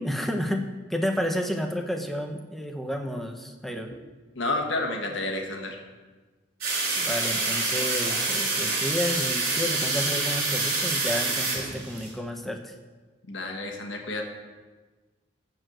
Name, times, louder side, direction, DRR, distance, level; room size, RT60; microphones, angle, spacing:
voice 1, 0.0-0.6 0.9-3.9 7.0-12.7, equal, ahead, 4 dB, 0.8 m, -31 dB
voice 2, 4.3-5.8 13.3-14.2, left 2 dB, 80° left, 2 dB, 1.4 m, -30 dB
sound 1, 6.6-12.1, right 3 dB, 50° right, 4.3 m, -27 dB
14.0 x 4.7 x 7.7 m, 1.3 s
head